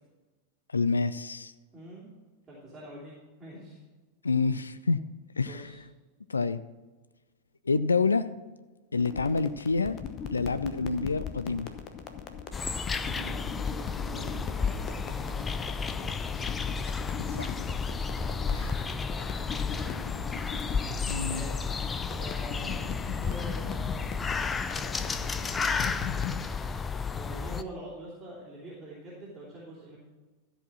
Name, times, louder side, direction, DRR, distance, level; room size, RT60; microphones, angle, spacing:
voice 1, 0.7-1.5 4.2-5.0 5.4-5.7 6.3-6.6 7.7-8.3 8.9-10.0 10.3-11.7 17.3-17.5 21.1-21.5, left 4 dB, 75° left, 0.4 m, -27 dB
voice 2, 1.7-2.1 2.5-3.8 5.5-5.8 13.0-16.2 18.1-20.0 21.2-22.9 23.2-25.8 27.1-30.0, right 1 dB, 15° right, 3.3 m, -46 dB
sound 1, 9.0-26.4, left 7 dB, 35° left, 0.9 m, -39 dB
sound 2, 12.5-27.6, left 5 dB, 15° left, 0.5 m, -32 dB
13.5 x 5.0 x 6.0 m
figure-of-eight pair, 90°, 0 cm